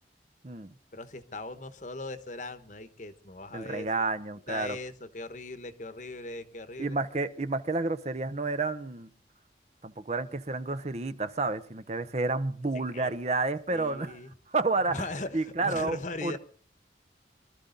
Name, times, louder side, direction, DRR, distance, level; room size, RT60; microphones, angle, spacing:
voice 1, 0.9-3.9 4.5-7.0 12.7-13.1 13.7-14.3 14.9-16.4, left 2 dB, 45° left, 11 dB, 1.1 m, -39 dB
voice 2, 3.5-4.8 6.8-9.1 9.8-14.2 14.5-15.1 15.3-16.4, right 3 dB, 35° right, 12 dB, 0.7 m, -30 dB
24.0 x 13.0 x 3.9 m, 0.44 s
head